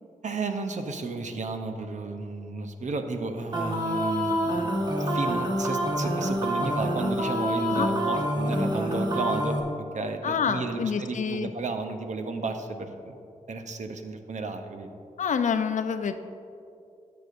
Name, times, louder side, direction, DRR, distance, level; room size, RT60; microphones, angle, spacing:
voice 1, 0.2-4.7 5.0-13.2 13.5-14.9, right 3 dB, 60° right, 6 dB, 0.7 m, -33 dB
sound 1, 3.5-9.6, equal, 30° right, 1.2 m, -27 dB
voice 2, 10.2-11.5 15.2-16.1, left 6 dB, 65° left, 9 dB, 0.5 m, -27 dB
12.5 x 6.9 x 2.6 m, 2.6 s
cardioid pair, 60°, 14 cm